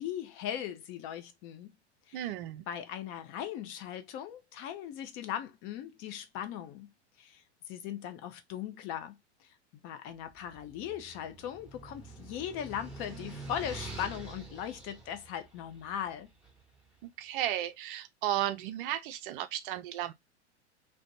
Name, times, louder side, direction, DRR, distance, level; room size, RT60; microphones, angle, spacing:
voice 1, 0.0-1.7 2.1-2.2 2.7-6.9 7.2-9.1 9.4-9.5 9.8-16.3, left 10 dB, 40° left, 0.5 m, -39 dB
voice 2, 2.1-2.6 17.2-20.1, right 12 dB, 50° right, 0.4 m, -34 dB
sound 1, 10.4-16.6, right 3 dB, ahead, 1.0 m, -46 dB
2.5 x 2.2 x 2.5 m
hypercardioid pair, 100°, 35 cm